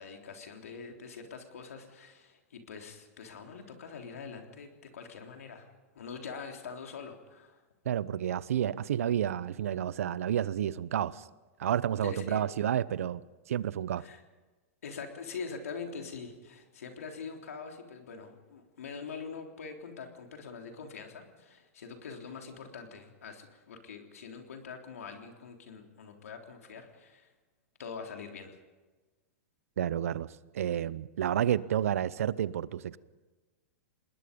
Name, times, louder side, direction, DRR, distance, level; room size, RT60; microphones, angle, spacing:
voice 1, 0.0-5.7 5.9-7.6 12.0-12.4 14.0-14.2 14.8-27.3 27.8-28.6, left 5 dB, 80° left, 3 dB, 3.5 m, -44 dB
voice 2, 7.8-11.3 11.6-13.2 13.5-14.0 29.8-30.3 30.5-33.0, right 10 dB, 75° right, 19 dB, 0.8 m, -30 dB
27.0 x 20.5 x 5.3 m, 1.2 s
hypercardioid pair, 115°, 8 cm